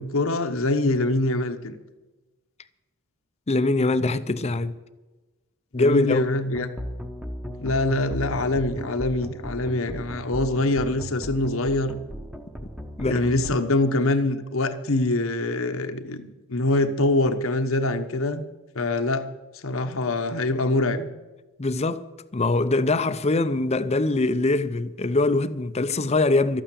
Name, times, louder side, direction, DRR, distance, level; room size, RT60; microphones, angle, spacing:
voice 1, 0.0-1.8 5.7-6.7 7.6-11.9 13.1-18.4 18.7-19.2 19.5-21.1, left 2 dB, 65° left, 1.1 m, -24 dB
voice 2, 3.5-4.7 5.7-6.3 13.0-13.3 21.6-26.6, left 2 dB, 30° left, 0.6 m, -23 dB
sound 1, 6.5-13.6, equal, 5° right, 1.0 m, -36 dB
13.0 x 9.0 x 8.5 m
head